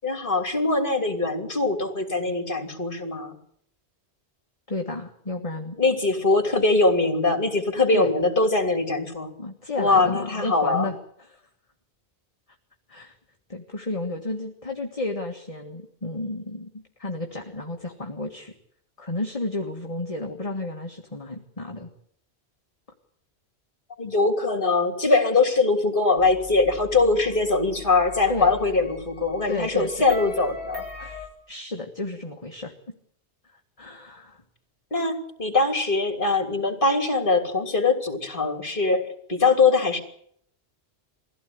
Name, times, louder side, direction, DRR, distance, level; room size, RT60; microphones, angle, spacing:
voice 1, 0.0-3.4 5.8-9.3 9.8-10.9 24.0-30.8 34.9-40.0, left 3 dB, 50° left, 5 dB, 3.3 m, -22 dB
voice 2, 4.7-5.8 7.9-8.1 9.4-11.4 12.9-13.2 13.5-18.5 19.0-21.9 28.3-28.5 29.5-30.1 31.0-32.7 33.5-34.4, left 2 dB, 30° left, 2 dB, 1.8 m, -32 dB
sound 1, 26.2-31.3, left 2 dB, 70° right, 5.3 m, -40 dB
22.5 x 16.0 x 9.5 m, 0.68 s
omnidirectional pair, 1.1 m